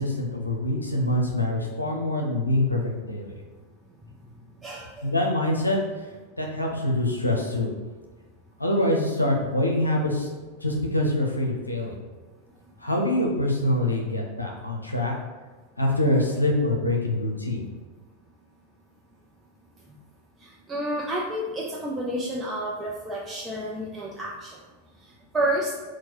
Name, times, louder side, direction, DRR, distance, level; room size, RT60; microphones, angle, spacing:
voice 1, 0.0-3.3 5.0-5.8 6.4-7.7 8.6-10.3 10.6-12.0 12.8-15.1 15.8-17.7, left 1 dB, 85° left, 1 dB, 0.6 m, -25 dB
voice 2, 4.6-5.1 20.4-24.5 25.3-25.7, right 1 dB, 10° right, -4 dB, 0.5 m, -30 dB
4.5 x 2.2 x 4.5 m, 1.3 s
figure-of-eight pair, 90°, 0 cm